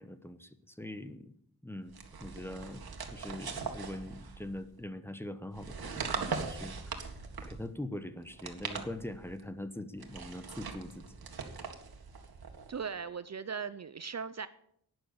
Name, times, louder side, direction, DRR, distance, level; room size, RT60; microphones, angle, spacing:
voice 1, 0.0-1.3 1.6-1.9 2.2-2.8 3.1-7.0 7.4-11.0, left 1 dB, 5° left, 11 dB, 1.0 m, -42 dB
sound 1, 1.9-4.7 5.5-7.7 8.3-9.4 10.0-12.8, right 5 dB, 70° right, 1.9 m, -41 dB
voice 2, 12.7-14.5, right 6 dB, 45° right, 14 dB, 0.6 m, -38 dB
11.5 x 9.4 x 8.5 m, 0.70 s
wide cardioid pair, 110°, 38 cm